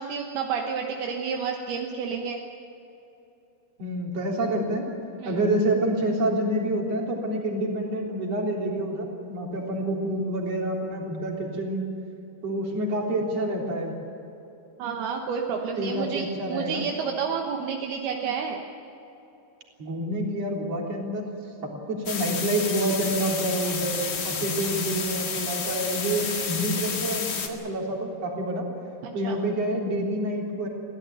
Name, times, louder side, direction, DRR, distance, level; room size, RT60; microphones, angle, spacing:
voice 1, 0.0-2.4 5.2-5.4 14.8-18.6 29.2-29.4, right 6 dB, 75° right, 1 dB, 3.1 m, -30 dB
voice 2, 3.8-4.9 5.3-11.8 12.4-13.9 15.8-16.9 19.8-21.3 21.6-28.7 29.1-30.7, right 1 dB, 40° right, -1 dB, 4.4 m, -28 dB
sound 1, 22.1-27.5, left 5 dB, 45° left, 2.5 m, -30 dB
24.5 x 16.5 x 9.0 m, 3.0 s
omnidirectional pair, 4.7 m